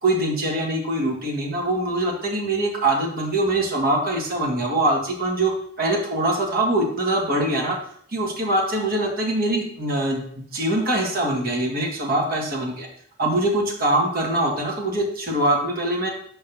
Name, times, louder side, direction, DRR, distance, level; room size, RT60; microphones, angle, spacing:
voice 1, 0.0-5.5 5.8-7.8 8.1-12.9 13.2-16.1, right 1 dB, 50° right, -1 dB, 1.6 m, -23 dB
5.5 x 3.6 x 5.8 m, 0.63 s
head